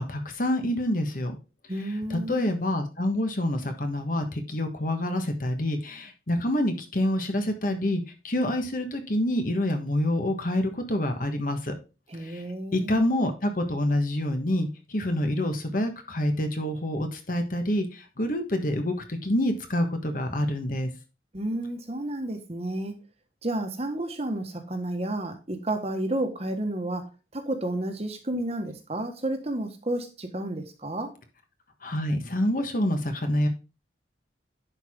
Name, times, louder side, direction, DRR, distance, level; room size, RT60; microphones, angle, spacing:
voice 1, 0.0-1.4 2.1-11.7 12.2-12.4 12.7-20.9 31.8-33.5, left 1 dB, 50° left, 1.3 m, -27 dB
voice 2, 1.7-2.5 12.1-13.0 21.3-22.9 23.4-31.1, right 1 dB, 35° right, 1.3 m, -31 dB
10.5 x 4.8 x 3.6 m
head